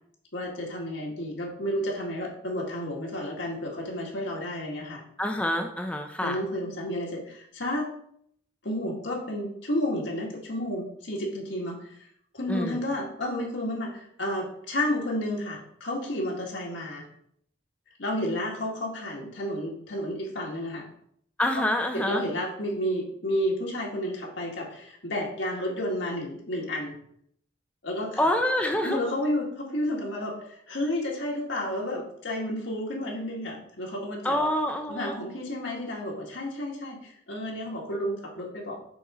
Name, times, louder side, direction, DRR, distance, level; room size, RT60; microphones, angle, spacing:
voice 1, 0.3-5.0 6.2-7.9 8.6-12.0 12.3-17.1 18.0-20.9 21.6-27.0 27.8-28.3 28.8-34.5 34.9-38.8, left 1 dB, 65° left, -2 dB, 1.8 m, -31 dB
voice 2, 5.2-6.4 12.5-12.8 21.4-22.2 28.2-29.0 34.2-35.1, left 1 dB, 5° left, 4 dB, 0.7 m, -26 dB
7.1 x 4.2 x 5.0 m, 0.68 s
head